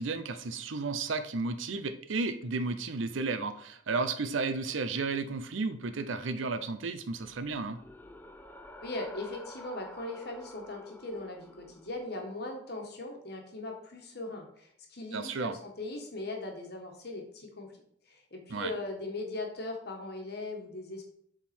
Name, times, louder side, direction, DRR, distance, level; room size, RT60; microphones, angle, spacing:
voice 1, 0.0-7.8 15.1-15.5 18.5-18.7, right 3 dB, 80° right, 10 dB, 0.6 m, -33 dB
sound 1, 7.0-12.2, left 1 dB, 10° left, 0.4 m, -50 dB
voice 2, 8.8-17.7 18.1-21.1, left 2 dB, 55° left, 2 dB, 1.3 m, -39 dB
7.2 x 3.8 x 4.3 m, 0.67 s
head